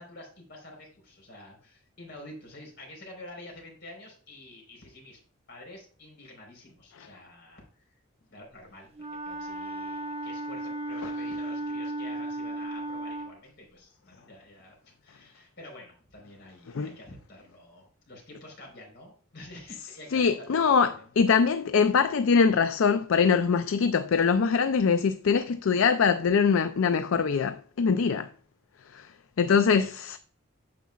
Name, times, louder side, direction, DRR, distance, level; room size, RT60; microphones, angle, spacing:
voice 1, 0.0-5.2 5.5-7.9 8.2-8.9 9.3-14.8 15.0-21.1 29.7-30.0, left 1 dB, 50° left, 4.0 m, -48 dB
Wind instrument woodwind instrument, 8.9-13.4, right 2 dB, 30° right, 1.2 m, -35 dB
voice 2, 20.1-20.9 21.2-28.3 28.9-29.1 29.4-30.2, left 5 dB, 70° left, 0.4 m, -23 dB
9.3 x 7.3 x 2.3 m
head